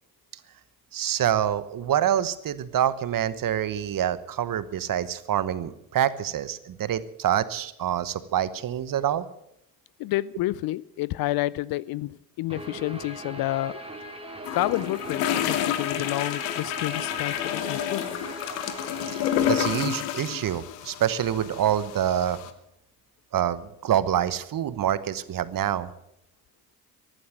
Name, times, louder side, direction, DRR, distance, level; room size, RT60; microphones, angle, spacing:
voice 1, 0.9-9.2 19.5-22.4 23.3-25.9, right 10 dB, 45° right, 1.1 m, -26 dB
voice 2, 10.0-13.8 14.5-18.1, left 16 dB, 50° left, 0.5 m, -29 dB
Guitar, 12.5-19.9, right 1 dB, 10° right, 2.7 m, -39 dB
sound 1, 14.4-22.5, left 11 dB, 70° left, 1.3 m, -29 dB
14.5 x 11.5 x 7.6 m
hypercardioid pair, 50°, 48 cm